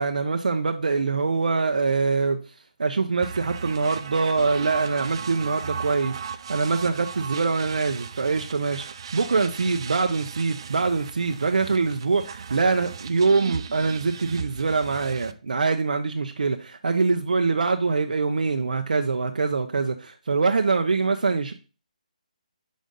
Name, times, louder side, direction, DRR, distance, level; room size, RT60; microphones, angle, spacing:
voice 1, 0.0-2.4 2.8-6.1 6.5-8.8 9.1-21.5, right 4 dB, 75° right, 0.6 m, -24 dB
sound 1, 3.2-15.3, right 6 dB, 40° right, 0.4 m, -37 dB
5.2 x 3.9 x 5.2 m
hypercardioid pair, 165°, 4 cm